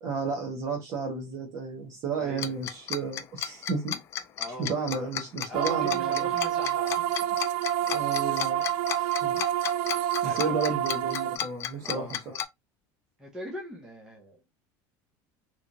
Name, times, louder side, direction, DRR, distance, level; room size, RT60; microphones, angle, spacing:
voice 1, 0.0-4.0 4.6-6.3 7.9-8.6 9.0-9.4 10.2-12.4, right 4 dB, 35° right, 1.2 m, -32 dB
voice 2, 2.2-2.6 4.4-5.1 5.5-7.4 9.0-9.4 10.2-10.8 11.8-12.2 13.2-14.4, equal, 5° right, 0.9 m, -41 dB
Tick-tock, 2.4-12.4, left 10 dB, 30° left, 0.3 m, -33 dB
sound 1, 5.5-11.4, right 12 dB, 55° right, 0.4 m, -28 dB
3.2 x 3.1 x 2.6 m
cardioid pair, 170°, 9 cm